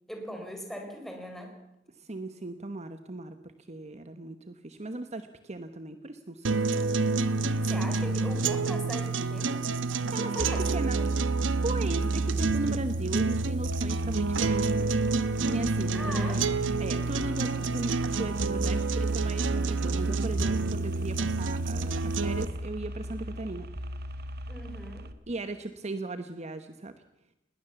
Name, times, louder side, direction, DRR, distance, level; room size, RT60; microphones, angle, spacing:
voice 1, 0.1-1.6 7.4-9.7 10.2-10.7 10.9-11.1 15.9-16.4 24.5-25.1, equal, ahead, 3 dB, 4.3 m, -40 dB
voice 2, 2.0-3.4 3.7-6.6 10.1-10.5 10.7-11.0 11.6-14.9 15.4-16.5 16.8-23.7 25.3-26.9, right 2 dB, 35° right, 10 dB, 1.1 m, -37 dB
sound 1, 6.4-22.4, right 3 dB, 85° right, 1.0 m, -28 dB
sound 2, 13.7-25.1, equal, 55° right, 1.5 m, -40 dB
20.0 x 18.5 x 7.1 m, 0.87 s
head